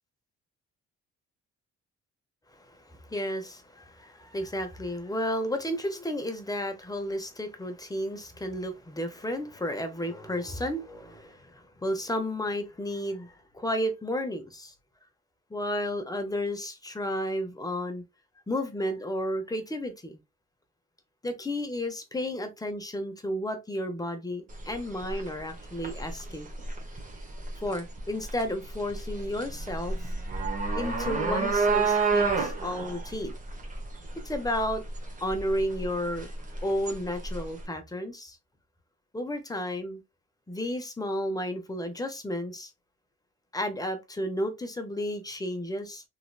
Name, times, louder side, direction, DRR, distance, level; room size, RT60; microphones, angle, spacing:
voice 1, 2.5-14.7 15.5-18.0 18.5-20.2 21.2-26.5 27.6-30.0 30.7-33.3 34.2-34.8 35.2-36.3 36.6-38.4 39.1-40.0 40.5-42.7 43.5-46.0, equal, 10° left, 0.8 m, -32 dB
sound 1, 24.5-37.6, right 4 dB, 25° right, 1.1 m, -31 dB
3.1 x 2.9 x 2.3 m
cardioid pair, 90°, 30 cm